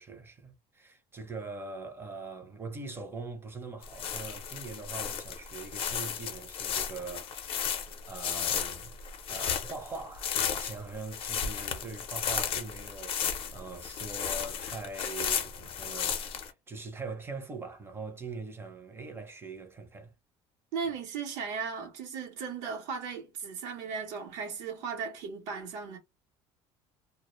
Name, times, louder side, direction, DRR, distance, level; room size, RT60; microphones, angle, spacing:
voice 1, 0.0-7.8 8.1-9.0 9.3-20.1, right 3 dB, 20° right, 0.6 m, -42 dB
sound 1, 3.8-16.5, left 8 dB, 45° left, 0.6 m, -34 dB
voice 2, 20.7-26.0, right 5 dB, 75° right, 0.8 m, -36 dB
2.1 x 2.0 x 3.0 m
cardioid pair, 120°, 13 cm